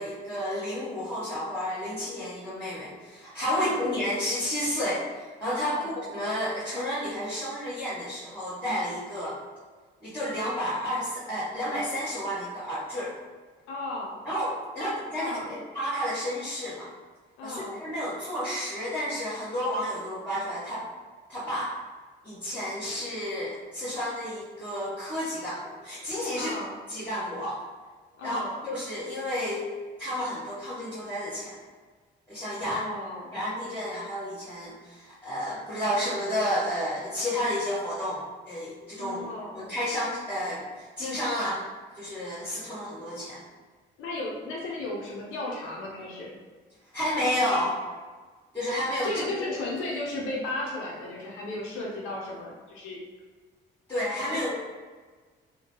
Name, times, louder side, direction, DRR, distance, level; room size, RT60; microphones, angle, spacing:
voice 1, 0.0-9.4 10.0-13.1 14.2-16.9 17.4-20.8 21.3-21.7 22.2-26.5 26.9-27.6 28.2-29.6 30.0-31.6 32.3-32.8 33.3-38.2 38.4-39.2 39.5-41.6 41.9-43.4 46.9-47.8 48.5-49.6 53.9-54.6, equal, 10° left, -13 dB, 1.2 m, -31 dB
voice 2, 5.6-5.9 13.7-14.2 14.8-15.5 17.4-17.7 26.3-26.7 28.2-28.6 32.6-33.3 39.0-39.6 44.0-46.3 49.0-53.0 54.3-54.4, left 2 dB, 85° left, -3 dB, 0.6 m, -35 dB
2.8 x 2.1 x 2.9 m, 1.4 s
cardioid pair, 90°, 20 cm